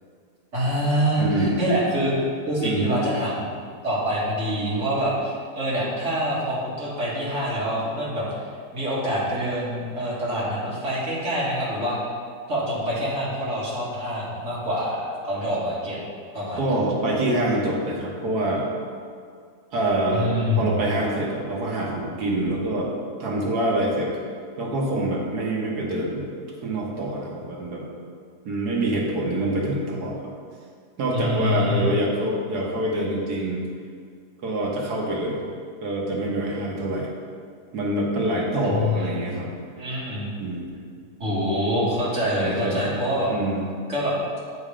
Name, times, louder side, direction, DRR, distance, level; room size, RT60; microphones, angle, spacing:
voice 1, 0.5-2.1 2.5-3.5 3.8-8.2 8.7-12.0 12.5-16.0 16.3-16.7 20.1-20.8 31.1-31.9 38.6-39.2 39.8-40.3 41.2-43.3 43.9-44.4, equal, 50° right, -8 dB, 2.3 m, -25 dB
voice 2, 1.2-1.6 2.6-3.0 16.6-18.7 19.7-22.9 23.2-24.1 24.6-26.3 26.6-27.9 28.4-30.3 31.0-33.6 34.4-35.5 35.8-37.1 37.7-39.5 40.4-40.7 42.3-42.9 43.3-43.7, right 1 dB, 75° right, -2 dB, 1.8 m, -25 dB
8.1 x 4.3 x 5.0 m, 2.1 s
omnidirectional pair, 1.7 m